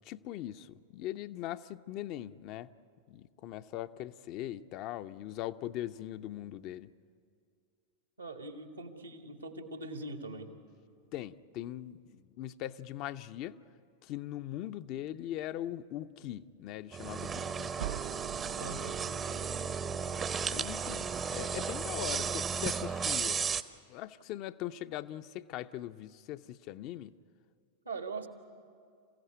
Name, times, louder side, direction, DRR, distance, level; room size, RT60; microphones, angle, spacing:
voice 1, 0.0-2.7 3.1-6.9 11.1-13.6 14.0-17.7 20.5-23.5 23.9-27.1, left 13 dB, 40° left, 11 dB, 0.6 m, -41 dB
voice 2, 8.2-10.5 18.6-19.0 27.8-28.3, right 3 dB, 80° right, 6 dB, 1.8 m, -42 dB
sound 1, 16.9-23.6, right 6 dB, 20° right, 0.7 m, -34 dB
sound 2, 17.8-22.5, right 12 dB, 55° right, 0.7 m, -46 dB
28.0 x 16.0 x 9.7 m, 2.3 s
figure-of-eight pair, 90°, 0 cm